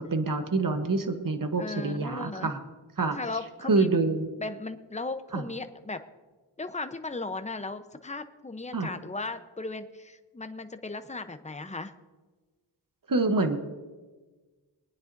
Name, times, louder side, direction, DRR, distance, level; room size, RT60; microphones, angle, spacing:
voice 1, 0.0-2.6 3.0-3.2 3.7-4.3 5.3-5.4 8.7-8.9 13.1-13.6, right 3 dB, 45° right, 7 dB, 1.1 m, -26 dB
voice 2, 1.6-2.5 3.1-3.9 4.4-6.0 6.6-11.9, left 3 dB, 15° left, 9 dB, 0.7 m, -36 dB
24.0 x 9.7 x 2.7 m, 1.3 s
wide cardioid pair, 50°, 48 cm